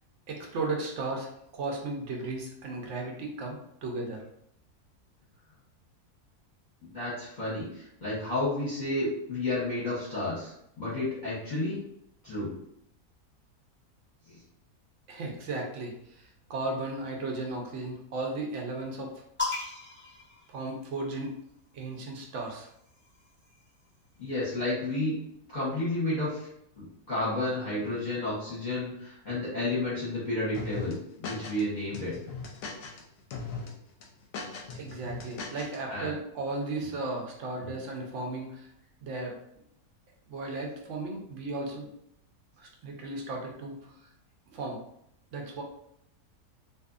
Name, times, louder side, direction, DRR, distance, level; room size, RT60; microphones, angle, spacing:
voice 1, 0.3-4.2 15.1-19.1 20.5-21.3 21.7-22.7 34.7-38.7 39.0-39.4 40.3-41.9 42.6-43.9 44.5-44.8 45.3-45.6, right 2 dB, 65° right, 0 dB, 0.8 m, -35 dB
voice 2, 6.8-10.5 10.8-11.8 12.2-12.5 24.2-25.1 25.5-26.3 26.8-30.9 31.2-32.1 35.9-36.1 37.6-37.7, left 2 dB, 35° left, -9 dB, 0.9 m, -31 dB
sound 1, 19.4-21.2 22.3-24.0, left 4 dB, 20° left, 0.3 m, -38 dB
sound 2, 30.5-31.6 31.9-33.0 33.3-33.7 34.0-35.8, left 4 dB, 70° left, 0.9 m, -38 dB
2.6 x 2.6 x 2.4 m, 0.74 s
omnidirectional pair, 1.6 m